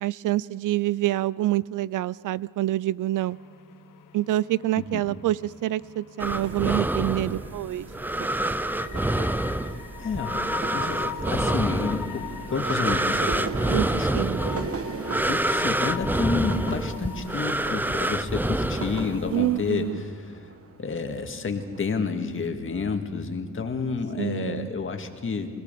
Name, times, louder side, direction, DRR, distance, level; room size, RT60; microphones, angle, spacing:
voice 1, 0.0-3.4 4.1-7.9 13.7-14.7 19.3-20.0 24.2-24.7, right 15 dB, 65° right, 20 dB, 0.4 m, -27 dB
sound 1, 3.2-19.1, left 9 dB, 70° left, 1.2 m, -42 dB
voice 2, 4.8-5.1 9.6-13.5 13.9-14.3 15.2-20.5 20.8-25.5, left 5 dB, 35° left, 5 dB, 1.9 m, -30 dB
sound 2, 6.2-19.5, right 1 dB, 5° right, 0.5 m, -27 dB
sound 3, 6.3-21.8, right 5 dB, 40° right, 1.3 m, -39 dB
25.5 x 18.5 x 6.9 m, 2.2 s
cardioid pair, 125°, 34 cm